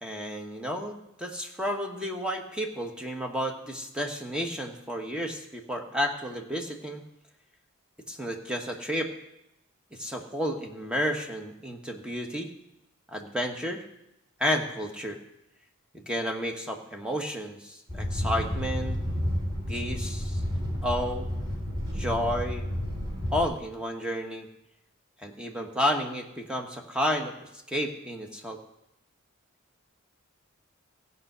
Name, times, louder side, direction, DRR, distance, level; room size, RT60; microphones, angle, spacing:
voice 1, 0.0-7.0 8.1-9.1 10.0-12.5 13.1-13.9 14.4-15.2 15.9-19.0 19.7-20.4 20.8-21.3 21.9-22.7 23.3-24.5 25.2-27.3 27.7-28.6, equal, 5° right, 2 dB, 1.2 m, -31 dB
sound 1, 17.9-23.4, equal, 20° right, 3.1 m, -31 dB
15.5 x 5.6 x 7.9 m, 0.84 s
head